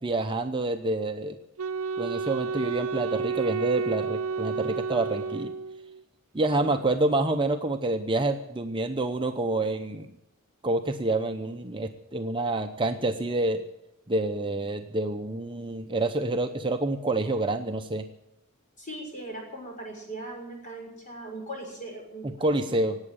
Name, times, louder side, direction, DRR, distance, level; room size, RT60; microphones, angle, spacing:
voice 1, 0.0-1.4 2.0-5.5 6.3-10.1 10.6-13.6 14.1-18.0 22.4-23.0, right 2 dB, 20° right, 5 dB, 0.7 m, -27 dB
Wind instrument woodwind instrument, 1.6-6.0, right 5 dB, 70° right, 0.5 m, -31 dB
voice 2, 18.8-23.0, right 1 dB, 35° left, 0 dB, 6.3 m, -40 dB
18.0 x 8.7 x 8.8 m, 0.87 s
head